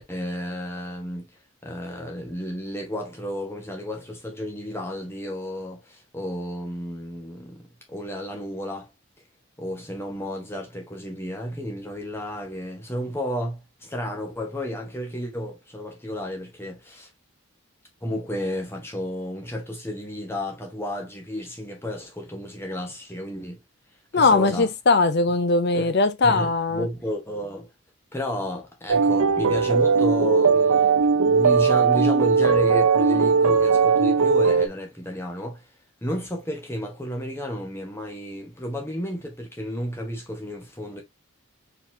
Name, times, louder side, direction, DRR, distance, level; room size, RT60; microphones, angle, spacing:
voice 1, 0.1-1.3 1.6-8.9 9.6-17.1 18.0-23.6 24.1-24.7 25.7-25.9 26.2-27.7 28.1-35.7 36.0-41.0, equal, 10° left, 1.3 m, -32 dB
voice 2, 24.1-26.9, left 3 dB, 50° left, 0.6 m, -20 dB
sound 1, 28.9-34.7, right 5 dB, 75° right, 0.6 m, -19 dB
4.5 x 4.0 x 2.7 m
head